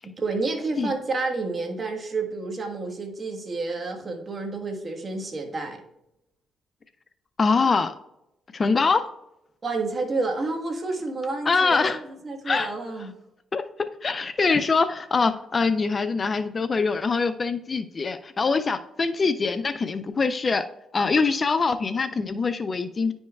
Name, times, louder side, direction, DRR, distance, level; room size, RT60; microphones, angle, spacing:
voice 1, 0.0-5.8 9.6-13.1, right 3 dB, 35° right, 2 dB, 1.4 m, -30 dB
voice 2, 7.4-7.9 8.5-9.1 11.5-12.0 12.5-12.7 13.5-13.6 14.0-20.7 20.9-23.1, left 4 dB, 35° left, 11 dB, 0.4 m, -23 dB
10.0 x 5.3 x 2.3 m, 0.84 s
cardioid pair, 90°, 0 cm